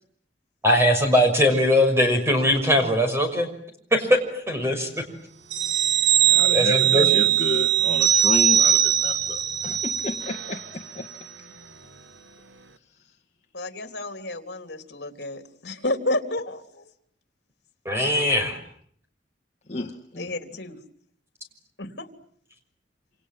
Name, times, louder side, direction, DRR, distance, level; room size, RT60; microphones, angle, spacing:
voice 1, 0.6-3.5 3.9-4.1 4.5-4.9 6.5-7.0 17.8-18.6, left 1 dB, 15° right, 5 dB, 6.1 m, -20 dB
sound 1, 5.5-10.6 10.9-11.1, right 10 dB, 80° right, 1.4 m, -21 dB
voice 2, 6.3-11.1 19.7-20.3, left 2 dB, 35° left, 0 dB, 1.9 m, -31 dB
voice 3, 13.5-16.9 20.2-20.8 21.8-22.1, left 2 dB, 60° left, 7 dB, 3.5 m, -31 dB
28.5 x 27.0 x 7.7 m, 0.66 s
head